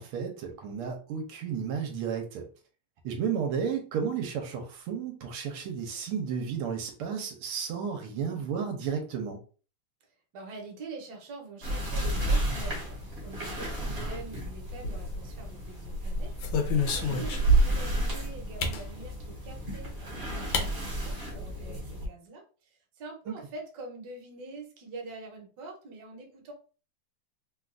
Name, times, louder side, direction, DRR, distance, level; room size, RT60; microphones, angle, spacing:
voice 1, 0.0-2.5 3.0-9.4 17.0-17.2 23.3-23.4, right 7 dB, 85° right, 1.5 m, -33 dB
voice 2, 10.3-22.7 23.0-26.5, right 3 dB, 60° right, 1.2 m, -45 dB
sound 1, 11.6-22.1, right 1 dB, 40° right, 0.8 m, -34 dB
sound 2, 14.7-15.4 15.9-17.9 18.6-18.9 20.0-20.1 20.5-20.7 21.0-21.1 21.4-21.8, equal, 85° left, 1.6 m, -26 dB
3.8 x 2.3 x 2.4 m
omnidirectional pair, 2.4 m